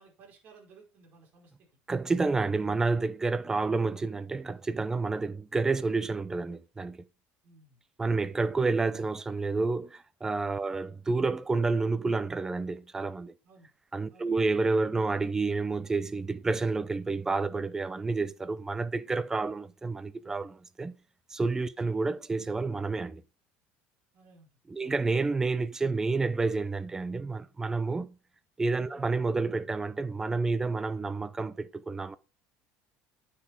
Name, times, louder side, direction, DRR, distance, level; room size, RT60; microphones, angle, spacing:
voice 1, 0.0-1.7 7.4-7.8 10.7-10.8 13.4-13.7 14.1-14.4 21.8-21.9 24.1-24.5 24.8-24.9 28.9-29.1, right 4 dB, 40° right, 4.9 m, -57 dB
voice 2, 1.9-7.0 8.0-13.3 13.9-20.9 21.3-23.2 24.7-28.1 28.6-32.2, right 3 dB, 10° right, 0.6 m, -29 dB
9.6 x 6.0 x 4.5 m
cardioid pair, 155°, 5 cm